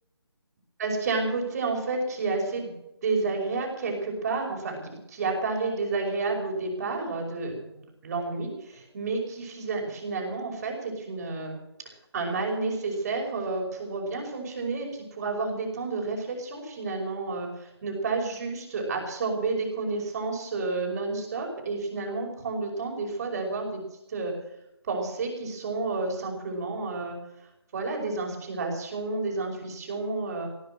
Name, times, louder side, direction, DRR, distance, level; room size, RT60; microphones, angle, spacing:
voice 1, 0.8-2.7 3.0-4.8 5.1-11.6 12.1-23.8 24.1-24.3 24.9-27.2 27.7-30.5, right 3 dB, 40° right, 2 dB, 5.6 m, -30 dB
18.0 x 9.8 x 7.7 m, 0.88 s
figure-of-eight pair, 155°, 14 cm